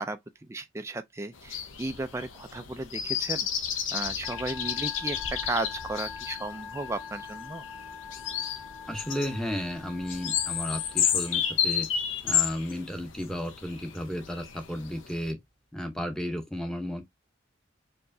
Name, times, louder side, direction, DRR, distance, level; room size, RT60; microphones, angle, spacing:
voice 1, 0.0-3.5 3.9-7.7, right 2 dB, 15° right, 0.3 m, -35 dB
sound 1, 1.4-15.3, left 8 dB, 80° left, 0.7 m, -32 dB
Musical instrument, 4.2-11.9, left 7 dB, 30° left, 2.4 m, -44 dB
voice 2, 8.9-11.9 12.2-15.4 15.7-17.0, equal, 5° left, 0.8 m, -33 dB
4.5 x 3.0 x 2.6 m
head